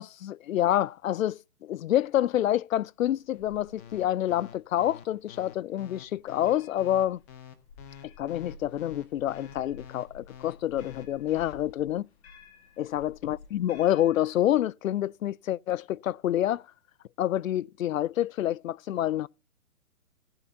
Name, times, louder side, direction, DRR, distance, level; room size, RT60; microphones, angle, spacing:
voice 1, 0.0-7.2 8.2-12.1 12.8-16.6 17.2-19.3, left 12 dB, 65° left, 0.5 m, -27 dB
sound 1, 3.1-14.6, left 4 dB, 45° left, 2.4 m, -53 dB
sound 2, 3.8-11.5, left 8 dB, 10° left, 0.5 m, -47 dB
15.5 x 7.9 x 4.0 m
hypercardioid pair, 135°, 45 cm